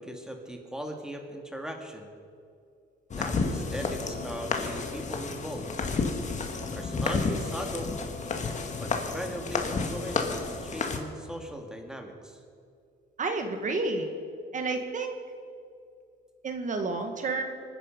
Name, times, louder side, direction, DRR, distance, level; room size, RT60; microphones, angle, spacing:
voice 1, 0.0-2.1 3.2-5.7 6.7-8.0 8.8-12.4, equal, 5° right, 3 dB, 2.1 m, -39 dB
sound 1, 3.1-11.0, left 4 dB, 40° left, 1.9 m, -31 dB
voice 2, 13.2-14.1 14.5-15.2 16.4-17.4, right 3 dB, 40° right, 5 dB, 1.8 m, -30 dB
24.5 x 10.0 x 5.3 m, 2.4 s
cardioid pair, 115°, 19 cm